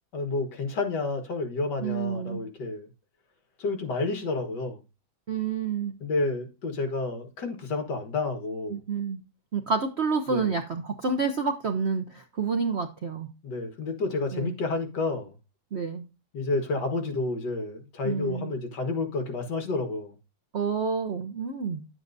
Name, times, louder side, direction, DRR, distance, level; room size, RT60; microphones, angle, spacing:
voice 1, 0.1-2.9 3.6-4.8 6.0-8.8 10.3-10.6 13.4-15.4 16.3-20.2, left 3 dB, 60° left, 2.1 m, -30 dB
voice 2, 1.8-2.4 5.3-5.9 8.7-9.2 9.5-13.3 14.3-14.5 15.7-16.0 18.0-18.5 20.5-21.8, right 5 dB, 55° right, 0.7 m, -29 dB
10.5 x 7.5 x 2.6 m
omnidirectional pair, 2.1 m